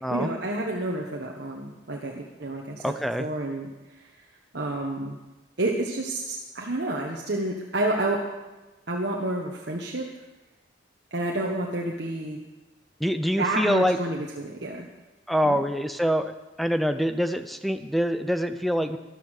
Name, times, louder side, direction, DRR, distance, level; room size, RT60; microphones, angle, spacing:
voice 1, 0.1-4.1 4.5-5.2 5.6-8.2 8.9-10.1 11.1-12.4 13.4-14.9 15.4-15.6, right 1 dB, 55° right, -1 dB, 1.4 m, -29 dB
voice 2, 2.8-3.3 13.0-14.0 15.3-19.0, equal, ahead, 9 dB, 0.5 m, -25 dB
13.5 x 12.0 x 6.6 m, 1.1 s
head